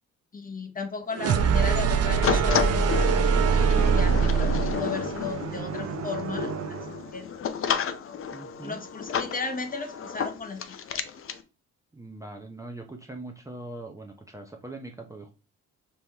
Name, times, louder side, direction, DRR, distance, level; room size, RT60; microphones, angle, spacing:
voice 1, 0.3-6.8 7.1-7.5 8.6-11.0, left 4 dB, 30° left, 5 dB, 0.9 m, -35 dB
sound 1, 1.1-7.0, right 6 dB, 55° right, 0.6 m, -24 dB
sound 2, 2.2-11.4, left 7 dB, 45° left, 0.6 m, -31 dB
voice 2, 8.3-8.8 11.9-15.3, right 2 dB, 10° right, 2 dB, 0.6 m, -41 dB
5.4 x 3.0 x 3.3 m, 0.32 s
cardioid pair, 90°, 30 cm